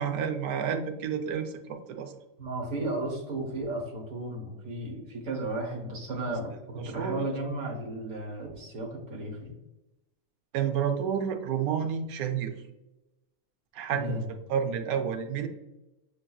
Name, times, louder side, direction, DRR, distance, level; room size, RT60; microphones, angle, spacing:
voice 1, 0.0-2.2 6.3-6.4 6.8-7.3 10.5-12.5 13.7-15.5, right 7 dB, 85° right, 7 dB, 1.1 m, -30 dB
voice 2, 2.4-9.5 13.9-14.3, right 1 dB, 70° right, 0 dB, 1.5 m, -34 dB
7.0 x 2.6 x 2.3 m, 0.98 s
omnidirectional pair, 1.5 m